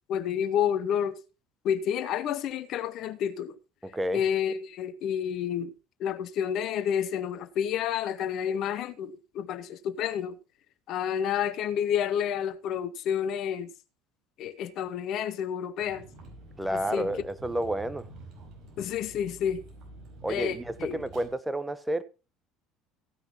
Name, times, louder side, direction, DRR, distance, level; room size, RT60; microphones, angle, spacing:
voice 1, 0.1-1.1 1.6-3.5 4.1-5.7 6.0-10.4 10.9-13.7 14.4-16.0 16.7-17.1 18.8-19.6 20.3-21.0, left 9 dB, 50° left, 0.8 m, -29 dB
voice 2, 3.8-4.2 16.6-18.1 20.2-22.0, right 1 dB, 10° right, 1.0 m, -30 dB
Vehicle, 15.8-21.3, right 2 dB, 50° right, 4.9 m, -48 dB
15.5 x 9.3 x 3.0 m
figure-of-eight pair, 65°, 0 cm